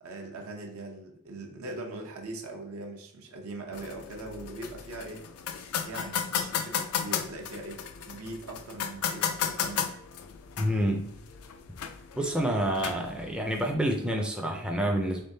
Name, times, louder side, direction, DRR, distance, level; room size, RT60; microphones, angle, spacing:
voice 1, 0.0-5.2 5.8-7.8 8.1-9.9, right 2 dB, 80° right, 1 dB, 0.7 m, -41 dB
sound 1, 3.7-13.7, left 8 dB, 80° left, 0.4 m, -35 dB
voice 2, 10.6-11.1 12.2-15.2, equal, 5° right, 1 dB, 0.4 m, -28 dB
3.5 x 3.5 x 2.7 m, 0.72 s
head